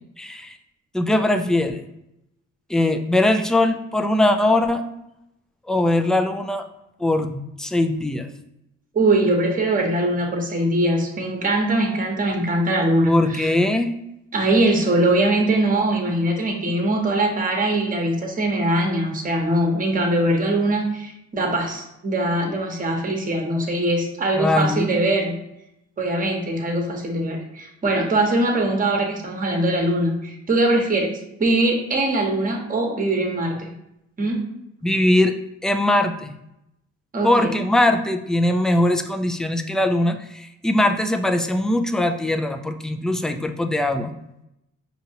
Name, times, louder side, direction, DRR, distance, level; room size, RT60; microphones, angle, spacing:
voice 1, 0.2-0.6 0.9-1.8 2.7-4.8 5.7-6.6 7.0-8.3 13.1-14.0 24.4-25.0 34.8-35.3 35.6-36.4 37.2-44.1, left 1 dB, ahead, 6 dB, 0.3 m, -21 dB
voice 2, 8.9-13.5 14.3-25.4 26.0-31.1 31.4-33.7 34.2-34.5 37.1-37.3, right 1 dB, 25° right, 2 dB, 1.0 m, -22 dB
5.2 x 2.9 x 2.7 m, 0.83 s
cardioid pair, 90°, 30 cm